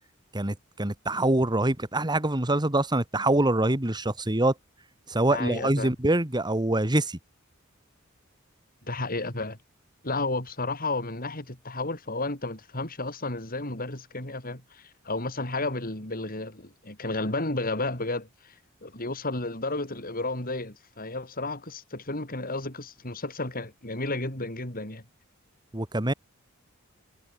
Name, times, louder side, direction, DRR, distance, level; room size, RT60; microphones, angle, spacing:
voice 1, 0.3-4.5 5.1-7.2 25.7-26.1, right 1 dB, 20° right, 1.8 m, -25 dB
voice 2, 5.3-5.9 8.8-9.6 10.0-18.5 18.8-25.0, left 2 dB, 45° left, 6.2 m, -32 dB
head